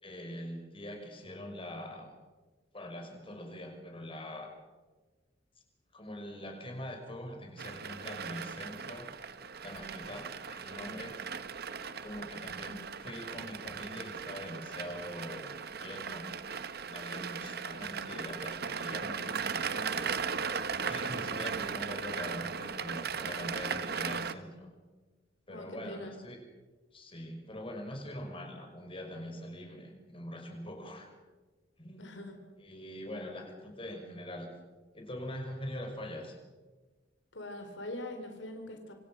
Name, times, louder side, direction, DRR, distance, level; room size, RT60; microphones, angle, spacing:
voice 1, 0.0-2.1 2.7-4.5 5.9-11.2 12.0-15.5 15.8-16.3 16.8-20.2 20.8-24.7 25.5-26.4 26.9-31.1 31.8-32.1 32.6-34.5 34.9-36.4, left 1 dB, 30° left, 3 dB, 5.6 m, -43 dB
sound 1, 7.6-24.3, right 6 dB, 55° right, 1.2 m, -37 dB
voice 2, 25.5-26.1 32.0-32.4 37.3-38.9, left 1 dB, 80° left, 5 dB, 4.1 m, -42 dB
27.0 x 26.5 x 6.5 m, 1.3 s
head